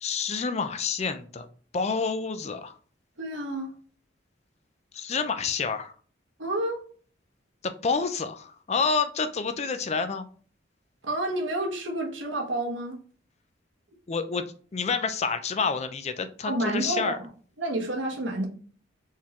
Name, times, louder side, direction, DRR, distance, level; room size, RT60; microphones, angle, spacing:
voice 1, 0.0-1.5 1.7-2.8 4.9-5.9 7.6-10.3 14.1-14.4 14.7-17.2, left 5 dB, 35° left, 10 dB, 0.4 m, -28 dB
voice 2, 3.2-3.7 6.4-6.8 11.0-13.0 16.4-17.3 17.6-18.5, right 1 dB, 85° right, 3 dB, 1.2 m, -29 dB
4.5 x 3.6 x 3.0 m, 0.42 s
head